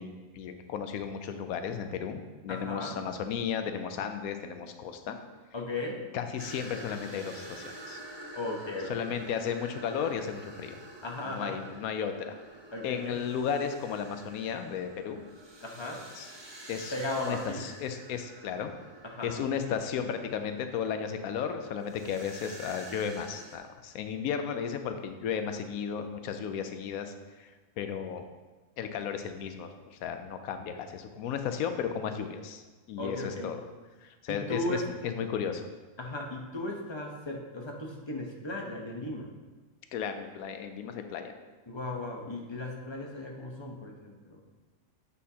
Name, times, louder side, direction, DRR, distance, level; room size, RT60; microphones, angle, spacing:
voice 1, 0.0-5.2 6.1-8.0 8.9-10.8 11.3-12.4 12.8-15.2 16.1-16.3 16.7-16.9 17.2-18.7 19.2-27.1 27.4-27.5 27.8-28.2 28.8-32.6 32.9-33.6 34.0-35.6 39.9-41.3, left 7 dB, 85° left, 7 dB, 1.1 m, -34 dB
voice 2, 2.5-3.0 5.5-6.0 8.3-9.2 11.0-11.6 12.7-13.2 15.6-16.0 16.9-17.7 19.0-19.3 33.0-33.5 34.3-34.9 36.0-39.3 41.7-44.4, left 2 dB, 25° left, 0 dB, 0.7 m, -36 dB
sound 1, 6.4-23.6, right 1 dB, 25° right, 0.6 m, -48 dB
8.4 x 5.5 x 2.8 m, 1.3 s
omnidirectional pair, 1.5 m